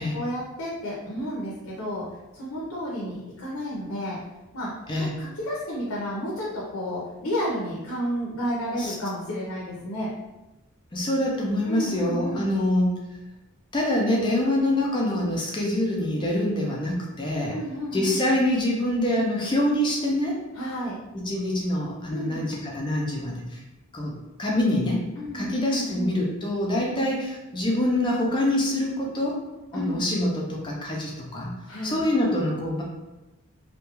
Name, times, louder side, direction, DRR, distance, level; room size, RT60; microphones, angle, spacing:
voice 1, 0.0-4.2 4.5-10.1 11.7-12.4 17.5-18.2 20.5-21.0 22.1-22.4 25.2-26.1 26.9-27.1 29.7-30.1 31.7-32.0, equal, 85° left, -5 dB, 0.6 m, -31 dB
voice 2, 10.9-12.9 13.7-17.5 17.9-20.4 21.3-23.6 23.9-24.1 24.4-25.0 25.3-29.4 29.7-31.5 31.8-32.8, left 1 dB, 20° left, -2 dB, 0.4 m, -25 dB
2.3 x 2.1 x 2.9 m, 1.0 s
head